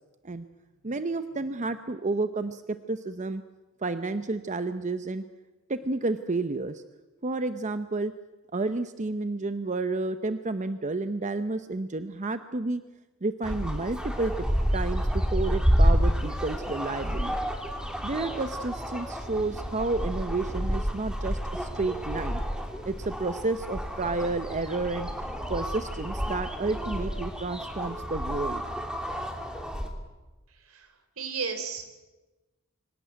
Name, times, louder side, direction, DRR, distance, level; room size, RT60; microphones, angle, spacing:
voice 1, 0.8-3.4 3.8-5.2 5.7-6.8 7.2-8.1 8.5-12.8 13.2-14.3 14.7-17.4 18.0-22.4 22.8-25.1 25.5-28.6, right 3 dB, 35° right, 10 dB, 0.8 m, -31 dB
sound 1, 13.4-29.9, equal, 5° right, 2.7 m, -29 dB
voice 2, 30.5-31.9, right 5 dB, 75° right, 8 dB, 3.7 m, -35 dB
25.0 x 17.5 x 9.3 m, 1.2 s
head